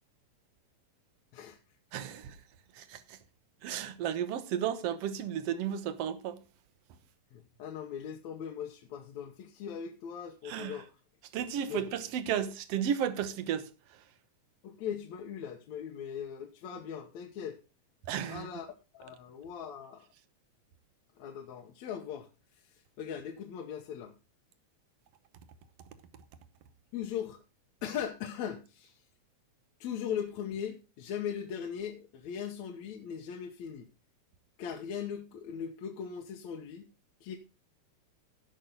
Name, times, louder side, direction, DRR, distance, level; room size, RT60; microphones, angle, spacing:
voice 1, 1.9-2.4 2.7-3.2 3.6-6.4 10.5-10.8 11.3-13.7 18.1-18.5, right 9 dB, 65° right, 1.9 m, -33 dB
voice 2, 7.3-10.9 11.7-11.9 14.6-17.6 18.3-18.7 18.9-20.1 21.2-24.1 26.9-27.4 27.8-29.0 29.8-33.9 34.6-36.9 37.2-37.4, left 8 dB, 70° left, 2.4 m, -39 dB
17.0 x 6.3 x 3.9 m
omnidirectional pair, 3.4 m